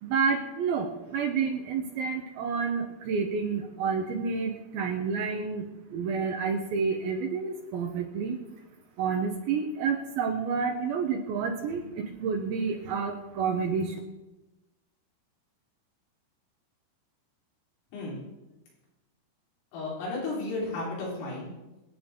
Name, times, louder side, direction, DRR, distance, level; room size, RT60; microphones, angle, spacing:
voice 1, 0.0-8.4 9.0-14.0, right 5 dB, 90° right, 2 dB, 2.1 m, -29 dB
voice 2, 19.7-21.5, left 2 dB, 75° left, -5 dB, 6.7 m, -33 dB
26.0 x 9.0 x 3.7 m, 1.0 s
omnidirectional pair, 5.9 m